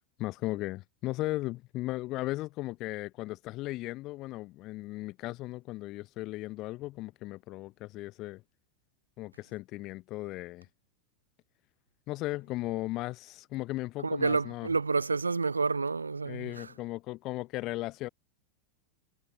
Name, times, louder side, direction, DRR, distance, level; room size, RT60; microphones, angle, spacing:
voice 1, 0.2-8.4 9.2-10.7 12.1-14.7 16.2-18.1, left 18 dB, 40° left, 7.7 m, -36 dB
voice 2, 14.0-16.7, right 4 dB, 75° right, 6.1 m, -29 dB
figure-of-eight pair, 90°, 0 cm